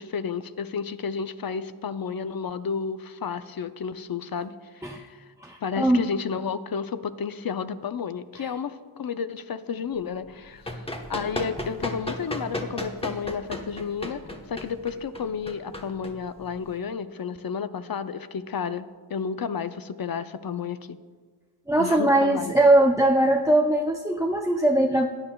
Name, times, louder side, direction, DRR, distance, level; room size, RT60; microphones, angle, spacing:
voice 1, 0.0-4.6 4.9-5.2 5.6-10.8 11.1-14.2 14.5-21.0 21.8-22.5, left 6 dB, 50° left, 12 dB, 0.5 m, -31 dB
voice 2, 5.4-6.0 8.4-8.5 21.7-25.1, right 1 dB, 5° right, 2 dB, 0.5 m, -21 dB
Run, 10.3-16.7, left 1 dB, 10° left, 1.0 m, -35 dB
17.0 x 9.8 x 2.3 m, 1.6 s
wide cardioid pair, 70°, 48 cm